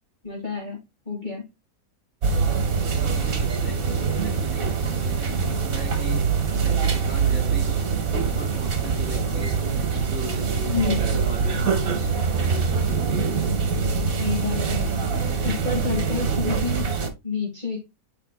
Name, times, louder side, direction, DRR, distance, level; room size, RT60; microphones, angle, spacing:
voice 1, 0.2-0.8 1.1-1.5 10.7-11.2 14.2-16.9 17.2-17.8, left 5 dB, 30° left, 2.1 m, -29 dB
sound 1, 2.2-17.1, right 5 dB, 65° right, 1.8 m, -24 dB
voice 2, 2.9-6.3 6.6-12.1 12.4-13.4, left 1 dB, 5° right, 4.4 m, -39 dB
10.0 x 4.8 x 2.3 m
omnidirectional pair, 1.6 m